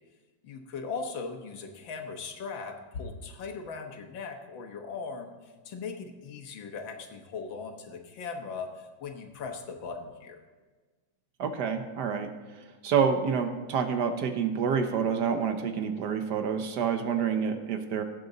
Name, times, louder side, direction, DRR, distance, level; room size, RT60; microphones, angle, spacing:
voice 1, 0.4-10.4, left 4 dB, 85° left, 4 dB, 2.0 m, -39 dB
voice 2, 11.4-12.3 12.8-18.0, right 6 dB, 65° right, 7 dB, 1.4 m, -28 dB
17.0 x 7.9 x 3.9 m, 1.3 s
omnidirectional pair, 2.0 m